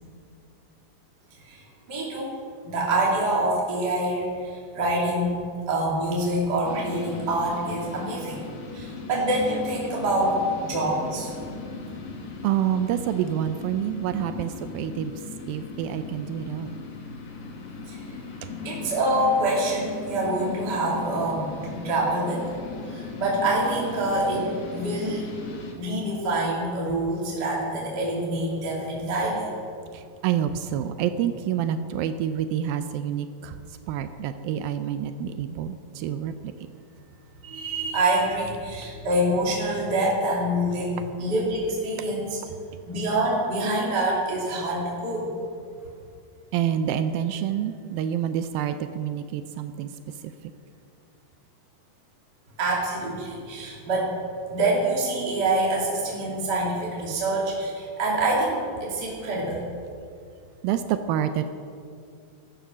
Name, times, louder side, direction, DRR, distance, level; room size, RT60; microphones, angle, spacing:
voice 1, 1.9-2.4 2.6-8.4 8.7-10.4 10.7-11.3 17.9-18.0 18.6-22.4 22.9-25.3 25.8-29.4 37.4-42.4 42.8-45.3 52.6-54.2 54.5-59.6, right 1 dB, 30° right, -4 dB, 3.1 m, -26 dB
sound 1, 6.6-25.7, left 4 dB, 60° left, 2.9 m, -38 dB
voice 2, 12.4-15.1 15.5-16.7 29.9-33.6 33.9-36.3 46.5-49.9 60.6-61.5, right 10 dB, 85° right, 9 dB, 2.4 m, -27 dB
15.5 x 13.0 x 6.2 m, 2.4 s
omnidirectional pair, 4.1 m